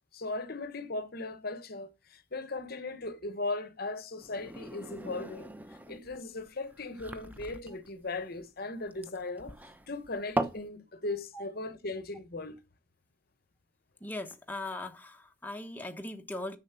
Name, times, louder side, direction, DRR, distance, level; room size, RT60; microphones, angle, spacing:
voice 1, 0.1-9.5 9.9-12.6, left 2 dB, 55° left, 1.0 m, -38 dB
sound 1, 4.2-10.7, right 1 dB, 10° right, 0.8 m, -39 dB
voice 2, 14.0-16.6, left 2 dB, 10° left, 1.1 m, -39 dB
7.3 x 7.3 x 5.8 m
head